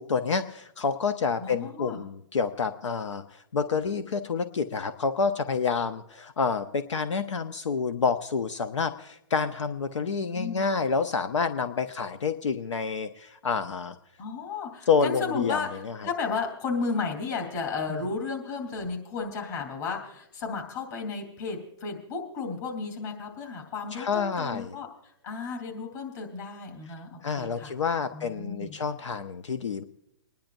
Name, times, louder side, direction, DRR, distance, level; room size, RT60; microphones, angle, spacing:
voice 1, 0.0-14.0 14.9-16.1 17.9-18.0 23.9-24.8 27.2-29.8, left 5 dB, 90° left, 10 dB, 0.7 m, -28 dB
voice 2, 1.4-2.0 10.0-10.6 14.2-24.9 25.2-27.7 28.1-28.7, left 4 dB, 40° left, 2 dB, 3.4 m, -33 dB
29.5 x 10.5 x 2.6 m, 0.83 s
hypercardioid pair, 140°, 15 cm